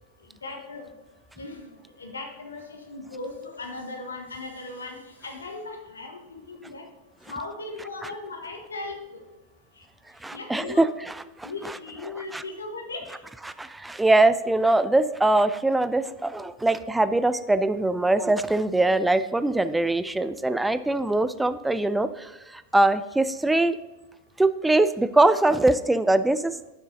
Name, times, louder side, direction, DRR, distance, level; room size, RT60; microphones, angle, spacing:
voice 1, 0.4-0.8 1.4-1.7 2.0-5.0 5.2-6.9 7.3-9.2 10.3-10.9 11.4-13.2, left 3 dB, 75° left, 4 dB, 1.1 m, -37 dB
voice 2, 10.2-10.9 11.4-11.7 12.3-12.4 13.6-23.8 24.4-26.6, right 2 dB, 5° right, 13 dB, 0.3 m, -22 dB
11.0 x 6.2 x 2.6 m, 1.0 s
figure-of-eight pair, 90°, 0 cm